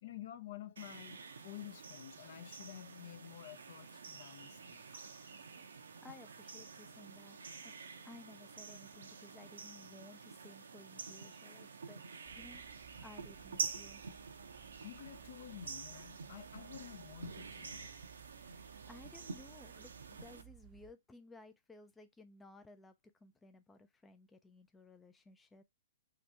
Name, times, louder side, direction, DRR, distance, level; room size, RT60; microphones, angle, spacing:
voice 1, 0.0-4.8 14.8-17.9, left 12 dB, 60° left, 0.5 m, -50 dB
sound 1, 0.8-20.4, right 5 dB, 85° right, 0.6 m, -48 dB
voice 2, 5.4-7.4 7.6-7.7 8.0-12.0 12.4-12.6 13.0-14.0 18.5-25.6, left 2 dB, 10° left, 0.3 m, -58 dB
sound 2, 12.2-20.9, right 19 dB, 35° right, 0.5 m, -60 dB
2.8 x 2.6 x 3.2 m
hypercardioid pair, 130°, 0 cm